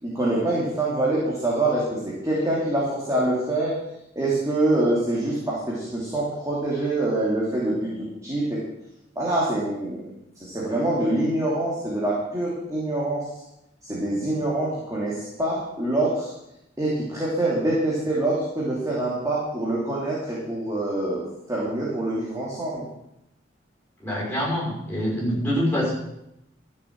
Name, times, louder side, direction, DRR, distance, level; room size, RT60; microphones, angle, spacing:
voice 1, 0.0-3.7 4.1-7.9 8.2-8.6 9.2-10.1 10.4-13.2 13.8-16.3 16.8-21.2 21.5-22.8, right 1 dB, 20° right, -6 dB, 2.8 m, -25 dB
voice 2, 24.0-25.9, equal, 10° left, -4 dB, 6.2 m, -25 dB
13.0 x 7.2 x 7.5 m, 0.85 s
head